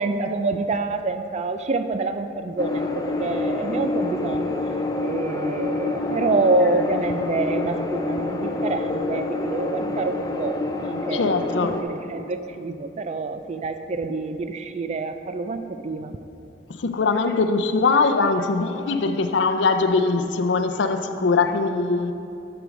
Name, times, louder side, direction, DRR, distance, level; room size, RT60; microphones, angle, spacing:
voice 1, 0.0-4.5 5.0-16.2, right 3 dB, 40° right, 9 dB, 0.4 m, -27 dB
sound 1, 2.6-11.8, left 2 dB, 20° left, 0.5 m, -27 dB
voice 2, 11.1-11.8 16.8-22.1, left 4 dB, 85° left, 8 dB, 0.5 m, -21 dB
8.1 x 6.0 x 5.2 m, 2.8 s
head